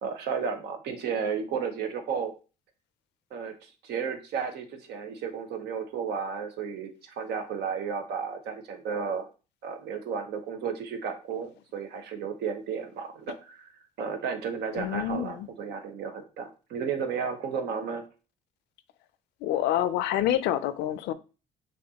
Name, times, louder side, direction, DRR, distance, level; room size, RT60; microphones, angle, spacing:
voice 1, 0.0-2.3 3.3-9.3 9.6-13.7 14.0-18.0, right 6 dB, 75° right, 0.9 m, -33 dB
voice 2, 14.7-15.5 19.4-21.1, left 11 dB, 85° left, 0.5 m, -27 dB
6.4 x 2.6 x 2.8 m
cardioid pair, 110°, 17 cm